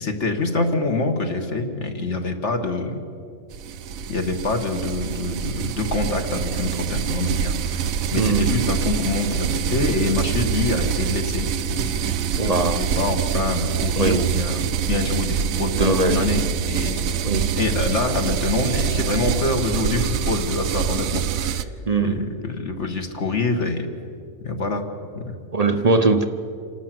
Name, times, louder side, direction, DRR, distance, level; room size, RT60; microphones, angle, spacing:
voice 1, 0.0-3.0 4.1-17.0 17.5-21.7 22.0-23.9 24.4-24.8 25.1-25.4, left 3 dB, 55° left, 4 dB, 1.8 m, -26 dB
sound 1, 3.5-21.6, right 7 dB, 75° right, 1.1 m, -25 dB
voice 2, 8.2-8.6 12.4-12.8 14.0-14.3 15.6-16.3 17.2-17.6 21.9-22.3 25.5-26.3, right 3 dB, 35° right, 7 dB, 0.7 m, -21 dB
27.5 x 12.5 x 7.6 m, 2.6 s
omnidirectional pair, 1.5 m